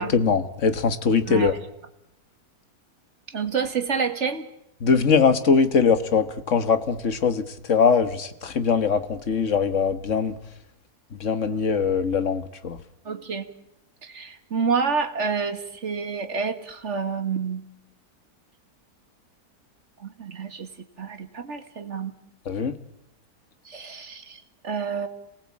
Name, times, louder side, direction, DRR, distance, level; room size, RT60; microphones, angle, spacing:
voice 1, 0.0-1.5 4.8-7.4 7.7-10.3 11.2-12.8 22.5-22.7, left 5 dB, 50° left, 11 dB, 1.7 m, -21 dB
voice 2, 1.3-1.6 3.3-4.5 13.1-13.5 14.0-17.6 20.0-22.1 23.7-25.1, right 5 dB, 45° right, 7 dB, 2.1 m, -28 dB
27.5 x 19.5 x 8.6 m, 0.83 s
omnidirectional pair, 1.7 m